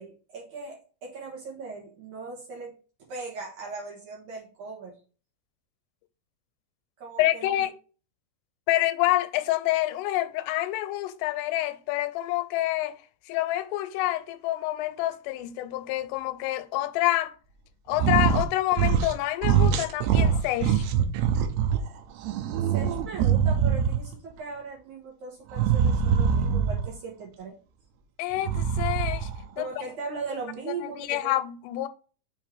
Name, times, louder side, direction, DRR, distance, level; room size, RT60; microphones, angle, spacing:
voice 1, 0.0-2.7 3.1-5.0 7.0-7.5 22.7-27.5 29.6-31.3, right 4 dB, 60° right, 2.1 m, -38 dB
voice 2, 7.2-7.7 8.7-13.0 13.3-17.4 17.9-20.9 28.2-29.3 29.6-29.7 30.1-30.2 30.7-31.9, left 15 dB, 90° left, 2.7 m, -27 dB
sound 1, 17.9-18.5 18.7-19.2 19.4-21.8 22.2-24.2 25.5-26.9 28.4-29.4, right 7 dB, 90° right, 2.7 m, -23 dB
7.0 x 3.0 x 4.6 m
omnidirectional pair, 4.7 m